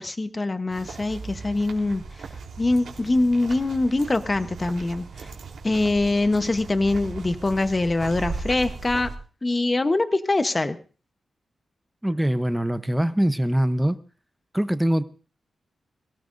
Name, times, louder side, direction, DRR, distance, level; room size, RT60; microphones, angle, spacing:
voice 1, 0.0-2.3 2.6-5.3 5.6-9.1 9.4-10.8, left 2 dB, 20° left, 11 dB, 0.9 m, -23 dB
sound 1, 0.7-9.1, right 4 dB, 90° right, 3.5 m, -38 dB
voice 2, 12.0-14.0 14.5-15.0, right 1 dB, 5° right, 13 dB, 0.7 m, -23 dB
22.0 x 17.5 x 2.6 m, 0.37 s
wide cardioid pair, 160°, 0 cm